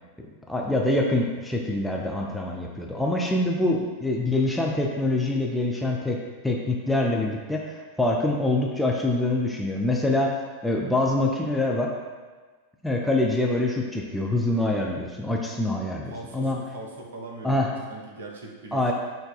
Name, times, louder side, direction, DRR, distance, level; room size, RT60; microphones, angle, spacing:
voice 1, 0.2-6.2 6.4-10.3 10.6-11.9 12.8-16.6 17.4-17.7 18.7-18.9, left 2 dB, 5° left, -1 dB, 0.3 m, -25 dB
voice 2, 16.1-18.9, right 2 dB, 65° right, 0 dB, 0.6 m, -40 dB
5.8 x 2.6 x 2.3 m, 1.4 s
figure-of-eight pair, 90°, 0 cm